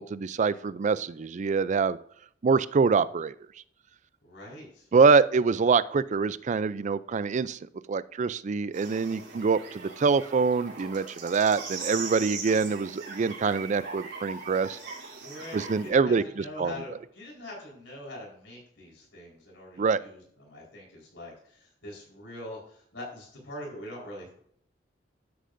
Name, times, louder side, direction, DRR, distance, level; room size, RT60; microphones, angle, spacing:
voice 1, 0.0-2.0 2.4-3.3 4.9-7.6 7.9-14.8 15.5-16.7 19.8-20.0, right 5 dB, 40° right, 16 dB, 0.4 m, -25 dB
voice 2, 4.2-4.9 15.2-24.3, left 1 dB, 80° left, -2 dB, 4.3 m, -43 dB
sound 1, 8.7-15.9, right 4 dB, 65° right, 3.3 m, -40 dB
12.5 x 10.0 x 2.6 m, 0.64 s
head